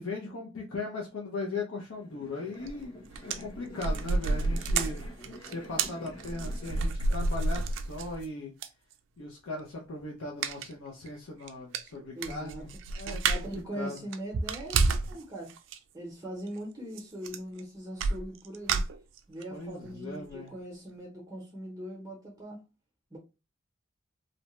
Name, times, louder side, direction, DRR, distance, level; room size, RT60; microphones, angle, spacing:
voice 1, 0.0-3.0 3.2-5.1 5.4-8.5 9.2-14.0 19.5-20.5, left 2 dB, 80° left, 0.5 m, -38 dB
sound 1, 1.9-7.1, left 1 dB, 25° left, 0.6 m, -48 dB
sound 2, 2.7-2.8 3.1-8.3 8.6-8.7 10.4-10.7 11.1-11.2 11.5-11.6 11.7-13.6 14.0-15.2 15.5-15.8 17.0-17.1 17.3-17.6 18.0-19.4 19.9-20.0 20.3-20.4, right 3 dB, 65° right, 0.3 m, -30 dB
voice 2, 12.1-12.7 13.1-15.5 15.9-18.8 19.3-22.6 23.1-23.2, right 1 dB, 15° right, 0.6 m, -41 dB
2.7 x 2.1 x 2.9 m
head